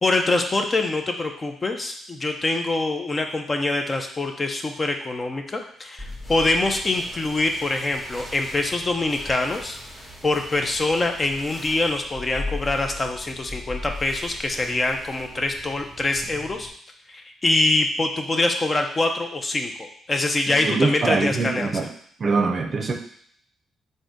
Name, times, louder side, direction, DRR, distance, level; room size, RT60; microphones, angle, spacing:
voice 1, 0.0-9.8 10.2-16.7 17.1-19.7 20.1-21.7, left 2 dB, 30° left, 4 dB, 0.5 m, -24 dB
sound 1, 6.0-16.7, left 2 dB, 10° left, 1.0 m, -38 dB
voice 2, 20.5-21.9 22.2-22.9, right 4 dB, 45° right, 3 dB, 0.6 m, -23 dB
3.8 x 2.6 x 3.7 m, 0.62 s
cardioid pair, 75°, 0 cm